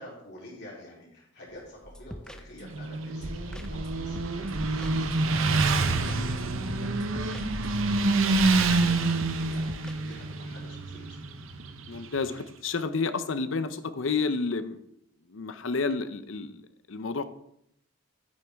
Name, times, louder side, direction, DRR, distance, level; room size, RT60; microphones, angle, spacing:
voice 1, 0.0-11.2, left 1 dB, 55° left, -4 dB, 3.4 m, -49 dB
sound 1, 1.5-1.8 2.2-2.3 2.7-2.8 3.2-9.0, equal, 40° right, 3.1 m, -41 dB
sound 2, 1.8-2.9 3.2-3.3 3.5-3.9 4.2-5.4 5.7-6.4 6.7-7.9 8.3-8.4 8.6-9.0 9.2-9.9, equal, 5° left, 0.4 m, -44 dB
Motorcycle, 2.6-12.4, right 3 dB, 75° right, 0.8 m, -27 dB
voice 2, 11.9-14.8 15.3-16.6 16.9-17.2, left 4 dB, 70° left, 12 dB, 0.6 m, -30 dB
9.3 x 8.4 x 3.5 m, 0.74 s
head